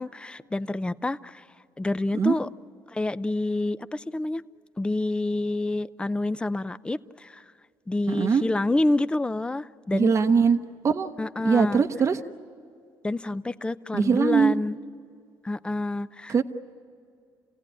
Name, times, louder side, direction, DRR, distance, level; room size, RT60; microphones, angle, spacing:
voice 1, 0.0-1.5 1.8-2.5 2.9-4.4 4.8-7.4 7.9-10.1 11.2-11.8 13.0-14.8 15.4-16.4, left 2 dB, 10° left, 15 dB, 0.5 m, -28 dB
voice 2, 8.1-8.4 9.9-10.6 10.8-11.1 11.4-12.2 13.9-14.6 16.3-16.4, right 5 dB, 35° right, 7 dB, 0.9 m, -21 dB
29.0 x 16.5 x 9.9 m, 2.3 s
cardioid pair, 110°, 8 cm